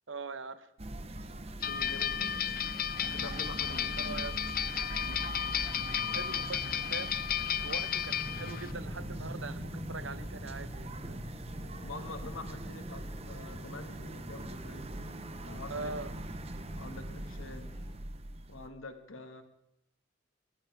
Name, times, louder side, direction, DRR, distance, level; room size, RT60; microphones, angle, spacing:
voice 1, 0.1-0.7 4.0-4.4 6.1-7.3 7.6-11.3 15.7-16.1, right 3 dB, 70° right, 12 dB, 1.2 m, -42 dB
sound 1, 0.8-18.7, right 1 dB, 30° right, 1.1 m, -42 dB
voice 2, 1.6-2.6 3.0-4.2 11.0-11.1 11.8-14.9 15.4-15.9 16.8-17.7 18.5-19.4, left 3 dB, 85° left, 7 dB, 2.0 m, -46 dB
sound 2, 1.6-8.7, left 9 dB, 45° left, 0.7 m, -33 dB
sound 3, 8.2-18.0, left 1 dB, 25° left, 1.0 m, -48 dB
21.5 x 15.5 x 3.6 m, 0.84 s
head